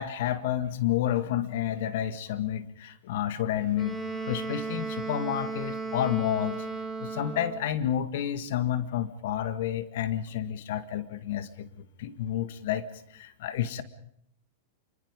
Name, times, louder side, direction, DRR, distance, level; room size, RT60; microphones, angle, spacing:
voice 1, 0.0-4.0 4.3-6.6 7.0-12.9 13.1-13.8, left 10 dB, 70° left, 12 dB, 1.9 m, -30 dB
Wind instrument woodwind instrument, 3.7-7.7, right 3 dB, 10° left, 6.1 m, -35 dB
26.0 x 25.0 x 5.3 m, 0.70 s
hypercardioid pair, 125°, 0 cm